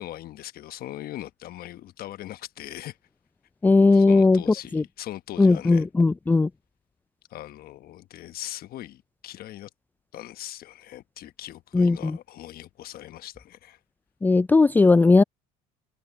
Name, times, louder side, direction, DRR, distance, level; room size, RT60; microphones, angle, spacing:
voice 1, 0.0-3.0 3.9-5.9 7.3-9.7 10.1-13.8, left 14 dB, 55° left, 1.2 m, -40 dB
voice 2, 3.6-4.4 4.7-4.8 5.4-6.5 11.7-12.2 14.2-15.2, left 3 dB, 10° left, 0.3 m, -18 dB
open air
supercardioid pair, 75°, 18 cm